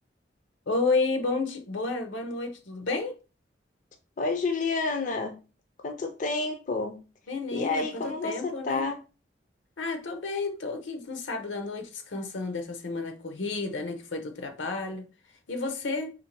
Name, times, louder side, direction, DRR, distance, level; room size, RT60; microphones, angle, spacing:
voice 1, 0.7-3.2 7.3-8.9 9.8-15.1 15.5-16.1, left 3 dB, 80° left, 0.7 m, -31 dB
voice 2, 4.2-5.4 5.8-7.0 7.5-9.0, left 3 dB, 45° left, 0.4 m, -29 dB
2.9 x 2.6 x 4.4 m
head